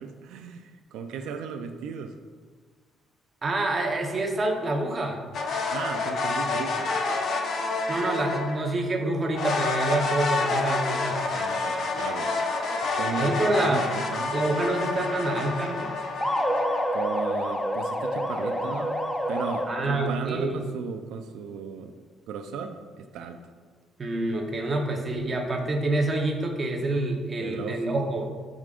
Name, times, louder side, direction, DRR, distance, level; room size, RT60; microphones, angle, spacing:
voice 1, 0.0-2.1 5.7-6.9 11.3-12.5 13.0-14.4 16.9-19.0 19.3-21.9 22.3-23.4 27.4-28.0, right 6 dB, 85° right, 6 dB, 0.5 m, -35 dB
voice 2, 3.4-5.2 7.9-11.2 13.2-13.9 14.3-15.9 19.7-20.5 24.0-28.3, right 2 dB, 25° right, 1 dB, 1.0 m, -27 dB
sound 1, 5.3-8.7 9.3-17.5, left 3 dB, 50° left, 0.7 m, -28 dB
sound 2, 16.2-20.1, equal, 5° left, 0.5 m, -28 dB
11.0 x 5.1 x 2.5 m, 1.5 s
cardioid pair, 165°, 0 cm